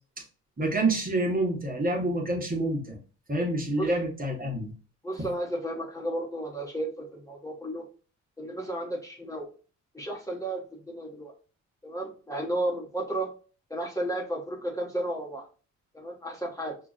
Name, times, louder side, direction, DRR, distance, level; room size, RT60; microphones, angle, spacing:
voice 1, 0.6-3.0 3.3-4.7 5.2-5.3, right 1 dB, 30° right, 0 dB, 1.2 m, -27 dB
voice 2, 5.0-7.8 8.4-9.5 9.9-11.3 11.8-13.3 13.7-15.5 15.9-16.8, right 1 dB, 10° left, -1 dB, 1.1 m, -33 dB
5.8 x 2.4 x 2.4 m, 0.37 s
cardioid pair, 90°, 30 cm